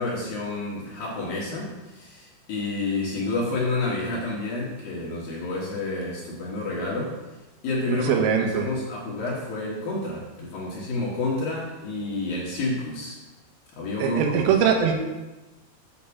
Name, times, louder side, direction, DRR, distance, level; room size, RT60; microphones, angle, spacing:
voice 1, 0.0-7.2 7.6-13.2 13.8-14.5, left 2 dB, 60° left, -4 dB, 2.7 m, -29 dB
voice 2, 8.0-8.7 14.0-15.0, right 7 dB, 80° right, 3 dB, 3.6 m, -21 dB
8.8 x 5.7 x 7.1 m, 1.1 s
omnidirectional pair, 5.8 m